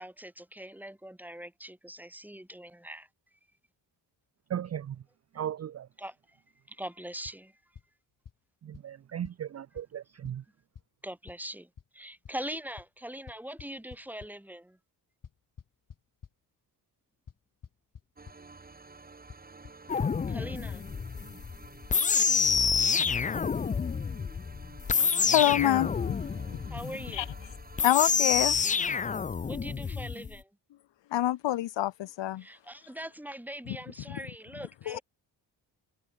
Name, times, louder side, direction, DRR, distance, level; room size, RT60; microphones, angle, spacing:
voice 1, 0.0-3.1 6.0-6.4 6.7-7.6 11.0-14.8 20.3-20.8 26.7-27.3 29.5-30.5 32.4-35.0, right 1 dB, 5° right, 4.2 m, -42 dB
voice 2, 4.5-5.0 5.3-5.9 8.6-10.4, right 10 dB, 35° right, 0.5 m, -36 dB
sound 1, 7.2-7.4 7.8-7.9 8.3-8.4 8.7-8.8 9.2-9.3 9.8-9.9 10.2-10.3 10.7-10.8 11.3-11.4 11.8-11.9 12.2-12.3 12.8-12.9 13.3-14.3 15.2-16.3 17.3-17.4 17.6-18.0 18.3-18.4 19.3-19.4 19.6-19.7 20.0-20.1 20.3-20.4, left 7 dB, 45° left, 3.7 m, -47 dB
sound 2, 18.1-29.2, right 3 dB, 20° right, 1.9 m, -52 dB
sound 3, 19.9-30.3, left 6 dB, 20° left, 0.3 m, -28 dB
voice 3, 25.3-25.9 27.1-27.2 27.8-28.6 31.1-32.4 34.1-34.2 34.9-35.0, left 13 dB, 70° left, 0.9 m, -26 dB
wide cardioid pair, 135°, 45 cm